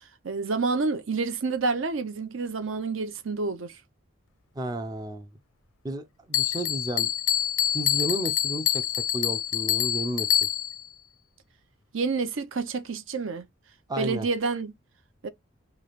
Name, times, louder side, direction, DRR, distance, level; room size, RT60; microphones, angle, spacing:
voice 1, 0.2-3.8 11.9-13.4 14.0-14.7 15.2-15.3, right 4 dB, 70° right, 0.7 m, -28 dB
voice 2, 4.6-5.3 5.8-7.1 7.7-10.3 13.9-14.3, right 1 dB, 20° right, 0.4 m, -32 dB
Bell, 6.3-10.9, left 11 dB, 85° left, 0.6 m, -26 dB
3.2 x 2.4 x 4.0 m
head